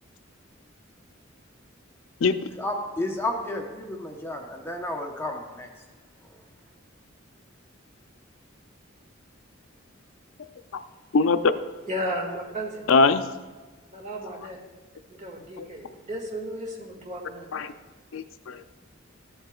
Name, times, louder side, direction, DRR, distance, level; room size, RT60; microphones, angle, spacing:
voice 1, 2.5-5.7, left 1 dB, 10° left, 2 dB, 0.8 m, -32 dB
voice 2, 11.1-11.5 12.9-13.3 17.5-17.7 18.1-18.8, left 4 dB, 80° left, 10 dB, 0.5 m, -21 dB
voice 3, 11.8-12.8 13.9-14.6 15.1-17.8, equal, 40° right, 0 dB, 1.8 m, -34 dB
14.0 x 7.8 x 2.3 m, 1.3 s
head